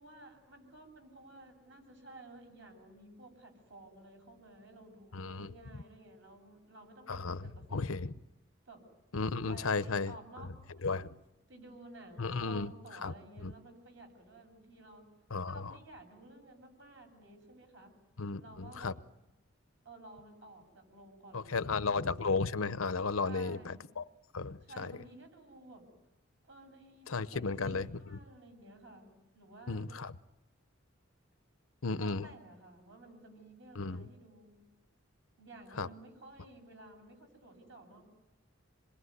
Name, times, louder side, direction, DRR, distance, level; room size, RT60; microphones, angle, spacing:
voice 1, 0.0-8.0 8.6-8.9 9.1-11.1 11.5-15.0 15.5-17.9 18.4-18.9 19.8-22.2 23.2-23.9 24.6-25.9 26.4-29.8 32.0-34.6 35.4-38.1, right 2 dB, 60° right, 4 dB, 7.8 m, -54 dB
voice 2, 5.1-5.5 7.1-8.1 9.1-10.1 10.8-11.1 12.2-12.7 13.0-13.1 13.4-13.5 15.3-15.6 18.2-18.9 21.3-24.0 24.3-24.9 27.1-27.9 29.7-30.1 31.8-32.3 33.7-34.0 35.8-35.9, left 4 dB, 90° left, 14 dB, 0.9 m, -34 dB
27.0 x 21.5 x 9.8 m, 0.99 s
head